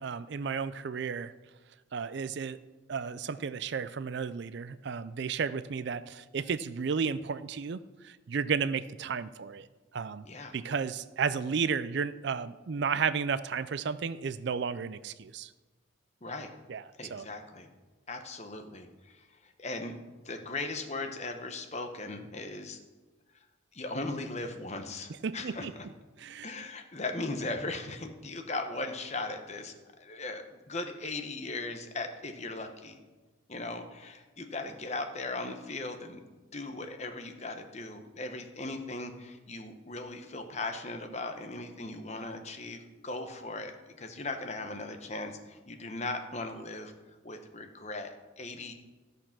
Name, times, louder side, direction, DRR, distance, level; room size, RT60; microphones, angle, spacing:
voice 1, 0.0-1.3 1.9-2.6 2.9-9.7 9.9-10.2 10.5-15.5 16.7-16.8 17.1-17.3 25.2-25.7 26.2-26.5, right 6 dB, 55° right, 15 dB, 0.4 m, -33 dB
voice 2, 17.0-17.7 18.1-19.9 20.2-22.8 23.7-25.8 26.4-33.0 33.5-36.2 36.5-46.9 47.2-48.7, left 2 dB, 35° left, 6 dB, 1.0 m, -38 dB
13.5 x 6.6 x 5.9 m, 1.3 s
head